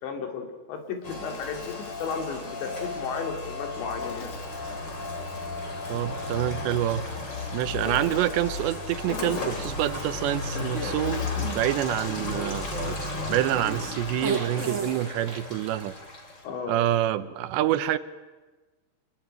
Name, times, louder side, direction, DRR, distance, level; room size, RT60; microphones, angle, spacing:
voice 1, 0.0-4.4 16.4-16.8, left 5 dB, 85° left, 4 dB, 5.2 m, -34 dB
Insect, 0.8-2.9 4.0-6.1 7.8-8.6 9.1-10.2 10.8-14.1, left 8 dB, 65° left, 3.1 m, -45 dB
Rain, 1.0-16.4, left 3 dB, 25° left, 3.5 m, -34 dB
voice 2, 5.9-7.1 7.5-12.7 13.3-16.0 16.7-18.0, right 13 dB, 85° right, 13 dB, 3.2 m, -27 dB
sound 1, 10.5-10.9 11.8-15.4, right 3 dB, 40° right, 1.0 m, -35 dB
26.0 x 22.0 x 9.1 m, 1.2 s
omnidirectional pair, 5.0 m